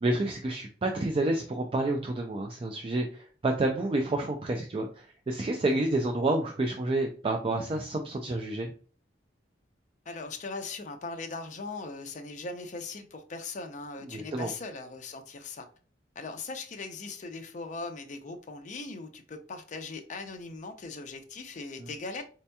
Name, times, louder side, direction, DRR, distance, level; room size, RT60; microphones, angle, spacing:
voice 1, 0.0-8.7 14.1-14.5 21.8-21.9, right 2 dB, 30° right, 0.4 m, -29 dB
voice 2, 10.1-15.7 16.2-22.2, left 3 dB, 45° left, 0.5 m, -39 dB
4.3 x 2.8 x 2.2 m
head